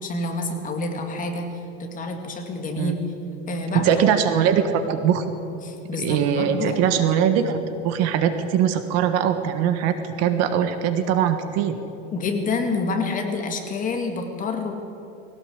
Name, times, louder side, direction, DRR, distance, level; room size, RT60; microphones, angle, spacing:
voice 1, 0.0-1.5 1.8-2.9 3.5-3.9 5.6-7.0 12.1-14.7, left 3 dB, 20° left, 3 dB, 2.4 m, -28 dB
voice 2, 3.8-5.2 6.0-7.6 7.8-11.8, right 8 dB, 45° right, 8 dB, 1.5 m, -21 dB
20.5 x 18.0 x 8.1 m, 2.9 s
supercardioid pair, 150°, 36 cm